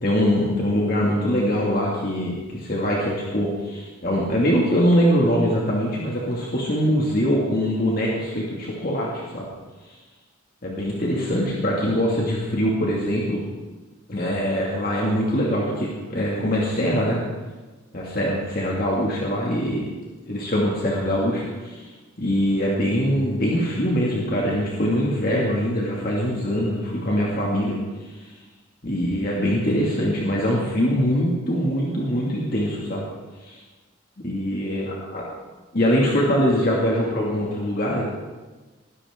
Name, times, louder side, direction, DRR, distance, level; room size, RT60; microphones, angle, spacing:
voice 1, 0.0-9.5 10.6-13.4 14.1-17.2 17.9-19.8 20.3-21.9 22.2-28.3 28.8-33.1 33.4-33.6 34.2-35.2 35.7-38.0, equal, 45° left, -3 dB, 2.2 m, -23 dB
21.0 x 13.5 x 3.7 m, 1.3 s
head